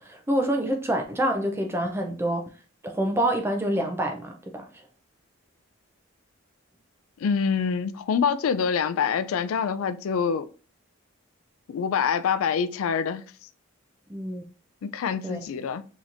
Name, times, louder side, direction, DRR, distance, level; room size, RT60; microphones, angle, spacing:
voice 1, 0.0-2.5 2.8-4.7 14.1-14.4 15.2-15.4, right 1 dB, 10° right, 0.5 m, -27 dB
voice 2, 7.2-10.5 11.7-13.3 14.8-15.9, left 6 dB, 75° left, 0.3 m, -26 dB
4.0 x 2.9 x 2.5 m
head